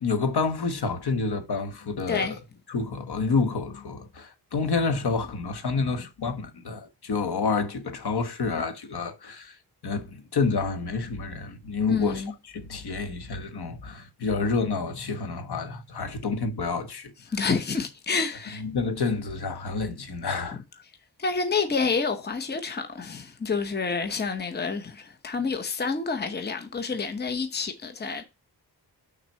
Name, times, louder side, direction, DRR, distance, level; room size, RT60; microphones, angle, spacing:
voice 1, 0.0-2.3 2.7-9.5 9.8-12.2 12.5-17.1 18.6-20.8, left 4 dB, 70° left, 1.3 m, -29 dB
voice 2, 2.1-2.4 11.9-12.3 17.3-18.6 21.2-28.2, left 4 dB, 25° left, 0.8 m, -28 dB
6.0 x 4.0 x 5.5 m
wide cardioid pair, 160°, 41 cm